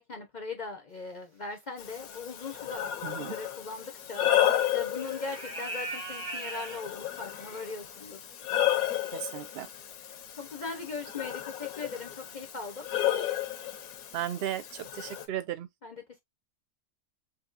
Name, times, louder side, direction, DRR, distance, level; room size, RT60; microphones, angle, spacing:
voice 1, 0.0-4.3 4.7-8.2 10.4-12.9 15.8-16.0, left 4 dB, 45° left, 0.6 m, -39 dB
Breathing, 1.8-15.3, left 11 dB, 80° left, 1.2 m, -33 dB
sound 1, 2.1-2.4 3.5-3.6 4.4-4.7 5.0-7.7 9.5-9.6 10.2-10.3 11.2-11.5 11.8-12.0 12.3-12.4, right 1 dB, 75° right, 2.8 m, -40 dB
voice 2, 3.0-3.4 9.1-9.7 14.1-15.7, right 11 dB, 55° right, 0.7 m, -35 dB
5.2 x 2.7 x 2.4 m
omnidirectional pair, 1.5 m